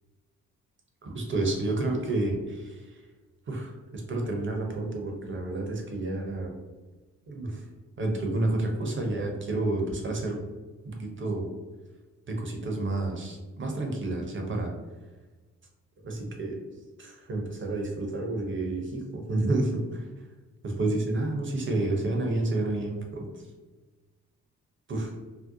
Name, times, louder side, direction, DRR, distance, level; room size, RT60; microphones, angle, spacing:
voice 1, 1.0-3.1 3.5-6.5 7.3-7.7 8.0-10.4 10.8-11.5 12.3-14.7 16.0-16.6 17.0-20.3 20.6-23.5 24.9-25.2, right 2 dB, 30° right, 1 dB, 0.7 m, -30 dB
2.7 x 2.0 x 2.7 m, 1.3 s
figure-of-eight pair, 40°, 38 cm